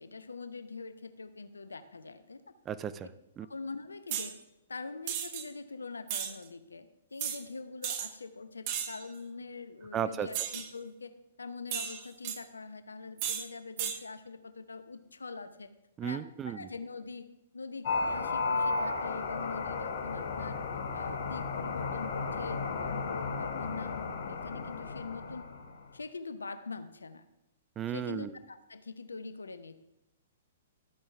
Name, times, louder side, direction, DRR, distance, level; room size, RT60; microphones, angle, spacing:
voice 1, 0.0-2.4 3.4-4.4 4.7-11.1 11.4-15.7 16.0-17.3 17.5-20.6 20.9-25.4 25.9-27.2 27.9-29.8, left 4 dB, 70° left, 11 dB, 0.7 m, -43 dB
voice 2, 2.7-3.1 3.4-3.5 9.9-10.3 16.0-16.6 27.8-28.3, right 9 dB, 20° right, 13 dB, 0.4 m, -34 dB
sound 1, 4.1-4.3 5.1-5.4 6.1-6.3 7.2-7.4 7.8-8.1 8.7-9.0 10.3-10.7 11.7-12.4 13.2-13.4 13.8-14.0, right 10 dB, 35° right, 0.9 m, -34 dB
sound 2, 17.8-25.8, left 4 dB, 50° left, 1.1 m, -34 dB
12.5 x 8.4 x 3.4 m, 0.91 s
figure-of-eight pair, 115°, 0 cm